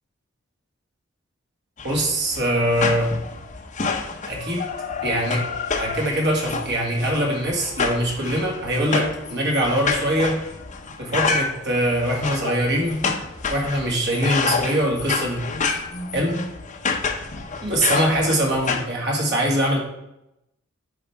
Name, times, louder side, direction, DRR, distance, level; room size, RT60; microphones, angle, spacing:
sound 1, 1.8-18.8, left 4 dB, 35° left, 0.7 m, -28 dB
voice 1, 1.8-3.1 4.3-4.7 5.0-5.4 5.7-10.4 11.0-13.0 13.5-15.4 16.1-16.3 17.6-19.8, right 1 dB, 55° right, -1 dB, 1.9 m, -22 dB
9.0 x 4.9 x 3.5 m, 0.85 s
head